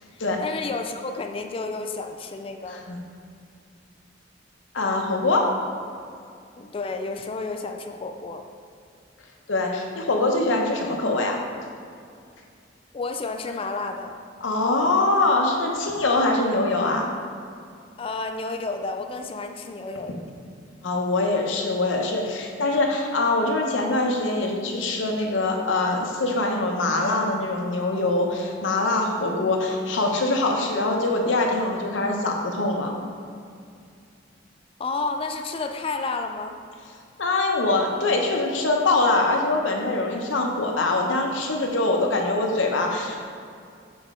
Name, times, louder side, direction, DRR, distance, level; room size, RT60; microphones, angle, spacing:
voice 1, 0.1-2.8 6.6-8.4 12.9-14.2 18.0-20.2 34.8-36.6, left 3 dB, 30° left, 5 dB, 0.3 m, -31 dB
voice 2, 4.7-5.5 9.5-11.4 14.4-17.1 20.8-32.9 37.2-43.2, left 2 dB, 80° left, 1 dB, 0.8 m, -23 dB
7.0 x 4.2 x 3.6 m, 2.3 s
head